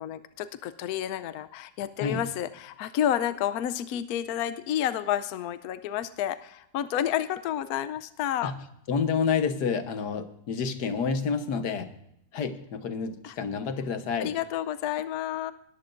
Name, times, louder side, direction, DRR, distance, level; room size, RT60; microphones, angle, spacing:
voice 1, 0.0-8.5 13.2-13.4 14.2-15.5, left 11 dB, 70° left, 13 dB, 1.1 m, -30 dB
voice 2, 8.4-11.9 12.3-14.3, left 5 dB, 90° left, 9 dB, 1.7 m, -29 dB
19.5 x 14.0 x 2.5 m, 0.77 s
omnidirectional pair, 1.7 m